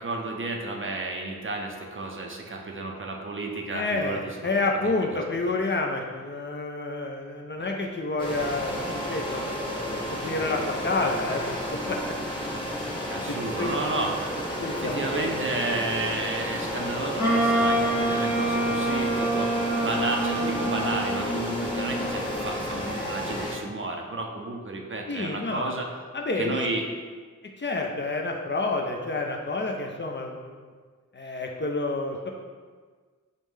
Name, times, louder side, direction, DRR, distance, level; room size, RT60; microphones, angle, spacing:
voice 1, 0.0-4.5 5.5-5.6 13.1-14.3 14.7-19.5 19.8-25.9 26.4-26.9, right 2 dB, 40° right, 1 dB, 0.5 m, -32 dB
voice 2, 3.7-9.4 9.9-12.1 13.3-13.8 14.6-15.5 25.1-25.8 26.1-26.7 27.6-30.6 31.1-32.3, left 2 dB, 35° left, 1 dB, 0.4 m, -29 dB
sound 1, 8.2-23.5, equal, 15° left, 0.9 m, -32 dB
Wind instrument woodwind instrument, 17.2-22.2, right 1 dB, 55° left, 1.0 m, -26 dB
5.1 x 2.1 x 3.2 m, 1.5 s
wide cardioid pair, 70°, 32 cm